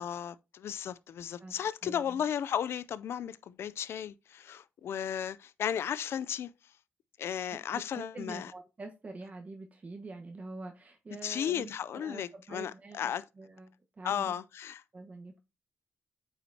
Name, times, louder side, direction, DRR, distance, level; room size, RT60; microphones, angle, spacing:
voice 1, 0.0-6.5 7.2-8.5 11.2-13.2 14.0-14.8, left 9 dB, 85° left, 0.4 m, -35 dB
voice 2, 1.8-2.2 7.7-14.4 14.9-15.4, right 3 dB, 35° right, 1.2 m, -46 dB
8.7 x 5.6 x 2.8 m
cardioid pair, 100°, 4 cm